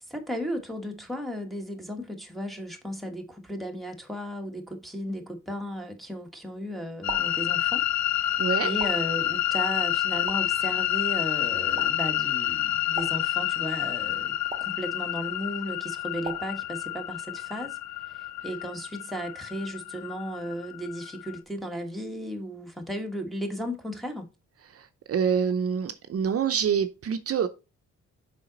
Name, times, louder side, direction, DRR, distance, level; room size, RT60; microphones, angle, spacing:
voice 1, 0.0-7.9 8.1-17.8 18.1-24.3, equal, ahead, 1.2 m, -35 dB
sound 1, 7.0-21.4, left 13 dB, 70° left, 0.6 m, -29 dB
sound 2, 7.1-7.5 8.8-9.2 10.3-10.6 11.8-12.1 13.0-13.4 14.5-14.9 16.2-16.6, right 4 dB, 20° right, 0.7 m, -39 dB
voice 2, 8.4-8.7 25.1-27.5, right 7 dB, 55° right, 0.6 m, -26 dB
7.2 x 5.0 x 3.9 m
wide cardioid pair, 165°, 29 cm